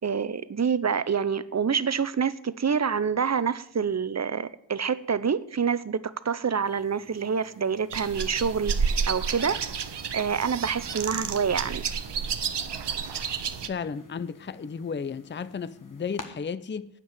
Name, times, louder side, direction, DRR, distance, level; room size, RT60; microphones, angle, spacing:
voice 1, 0.0-9.6 10.1-11.8, right 6 dB, 35° right, 0.7 m, -27 dB
sound 1, 6.6-16.3, left 3 dB, 45° left, 1.7 m, -51 dB
sound 2, 7.9-13.7, right 6 dB, 65° right, 1.0 m, -30 dB
voice 2, 13.7-16.9, left 6 dB, 25° left, 0.5 m, -33 dB
9.3 x 7.7 x 9.1 m
wide cardioid pair, 75°, 44 cm